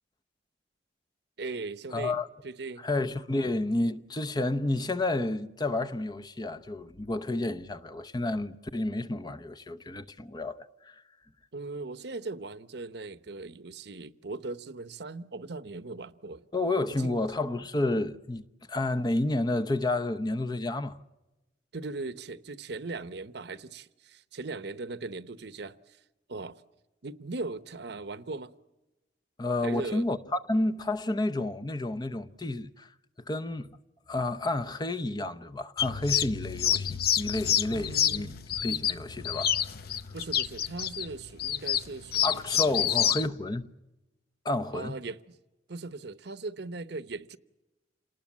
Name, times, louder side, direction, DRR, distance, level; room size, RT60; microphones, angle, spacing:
voice 1, 1.4-2.2 2.4-2.8 3.3-3.5 11.5-16.4 17.0-17.2 21.7-26.0 26.3-26.6 27.0-28.5 29.6-30.1 37.7-38.3 40.1-43.1 44.7-45.3 45.7-47.4, right 3 dB, 60° right, 0.9 m, -39 dB
voice 2, 1.9-2.3 2.8-11.0 16.5-21.0 29.4-32.9 33.3-33.7 34.1-38.3 38.6-39.6 42.2-43.7 44.4-45.0, left 2 dB, 25° left, 0.7 m, -30 dB
sound 1, 35.8-43.3, left 9 dB, 55° left, 0.7 m, -28 dB
28.0 x 19.5 x 7.3 m
head